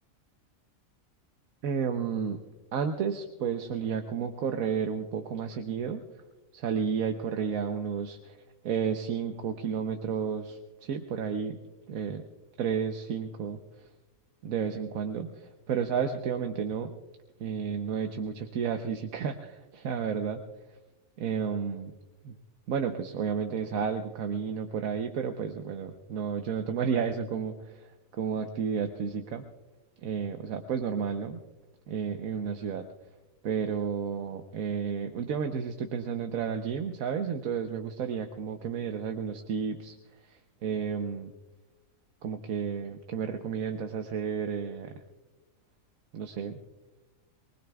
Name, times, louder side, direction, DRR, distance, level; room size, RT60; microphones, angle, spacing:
voice 1, 1.6-2.4 2.7-6.0 6.5-8.2 8.6-11.6 11.9-12.2 12.6-13.6 14.4-15.3 15.7-16.9 17.4-20.4 21.2-21.9 22.2-22.3 22.7-27.6 28.2-29.4 30.0-31.4 31.9-32.8 33.4-39.9 40.6-41.3 42.2-44.9 46.1-46.6, right 6 dB, 80° right, 6 dB, 1.2 m, -31 dB
23.5 x 20.0 x 2.3 m, 1.1 s
omnidirectional pair, 1.5 m